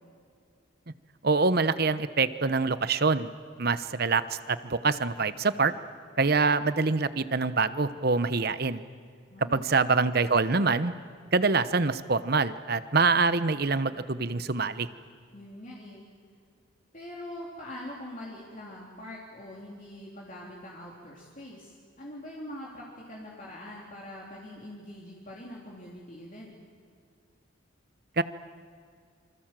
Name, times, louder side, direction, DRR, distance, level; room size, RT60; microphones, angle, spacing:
voice 1, 1.2-3.3 3.6-5.7 6.2-8.8 9.5-10.9 11.3-14.9 28.2-28.3, right 4 dB, 50° right, 13 dB, 0.9 m, -25 dB
voice 2, 9.3-9.7 15.3-16.0 16.9-26.6, left 1 dB, 40° left, -4 dB, 3.5 m, -43 dB
27.5 x 26.0 x 7.6 m, 2.2 s
head